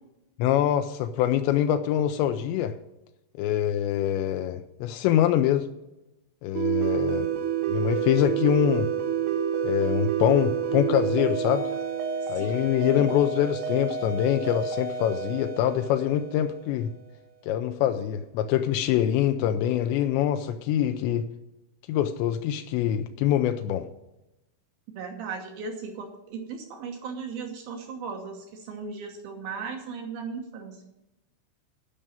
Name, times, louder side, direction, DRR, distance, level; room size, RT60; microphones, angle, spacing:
voice 1, 0.4-2.7 3.4-5.7 6.4-7.3 7.7-8.9 9.6-11.7 12.3-16.9 17.5-21.2 21.9-23.9, left 11 dB, 85° left, 7 dB, 2.5 m, -24 dB
sound 1, 6.5-16.9, right 8 dB, 90° right, 4.0 m, -29 dB
voice 2, 12.4-13.1 25.0-30.8, right 5 dB, 70° right, 3 dB, 2.3 m, -37 dB
12.5 x 5.5 x 8.9 m, 0.94 s
omnidirectional pair, 5.7 m